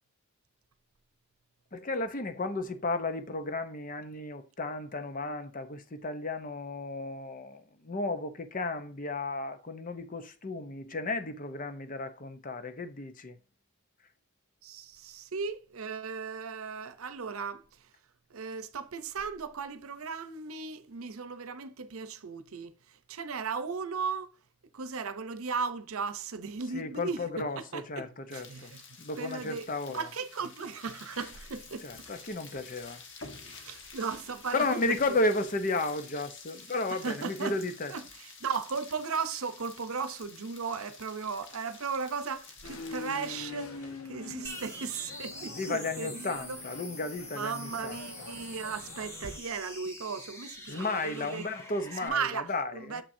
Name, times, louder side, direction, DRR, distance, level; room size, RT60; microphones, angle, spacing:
voice 1, 1.7-13.3 26.7-28.7 29.0-30.0 31.8-33.0 34.5-37.9 45.5-48.0 50.7-53.0, left 2 dB, 40° left, 0.7 m, -33 dB
voice 2, 14.6-17.6 18.3-24.3 24.7-27.5 27.7-28.8 29.2-31.9 33.5-35.0 36.9-37.6 37.9-46.6 47.3-51.4 52.0-53.0, right 5 dB, 75° right, 0.7 m, -36 dB
sound 1, 28.3-43.5, left 5 dB, 55° left, 1.2 m, -50 dB
sound 2, 42.6-49.4, left 4 dB, 80° left, 1.2 m, -45 dB
sound 3, 44.4-52.1, left 1 dB, 15° left, 1.1 m, -45 dB
6.9 x 5.9 x 2.7 m
head